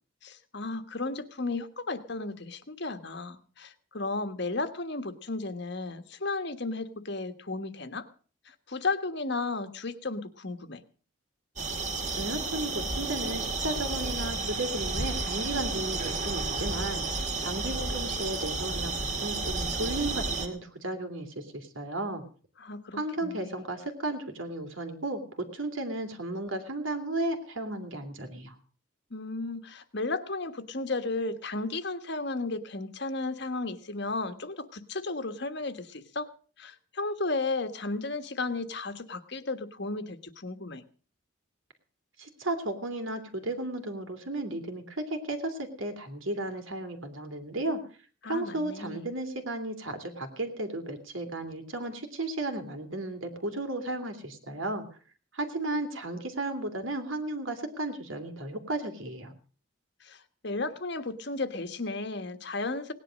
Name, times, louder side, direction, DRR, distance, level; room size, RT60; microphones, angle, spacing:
voice 1, 0.2-8.1 8.5-10.8 22.6-23.6 29.1-36.3 36.6-40.8 48.2-49.0 60.0-62.9, left 3 dB, 55° left, 9 dB, 1.5 m, -34 dB
sound 1, 11.6-20.5, right 3 dB, 35° right, 2.5 m, -32 dB
voice 2, 12.1-22.2 22.9-28.5 42.2-47.8 48.2-54.8 55.3-59.3, right 2 dB, 70° right, 7 dB, 2.9 m, -34 dB
18.5 x 10.5 x 6.4 m, 0.41 s
head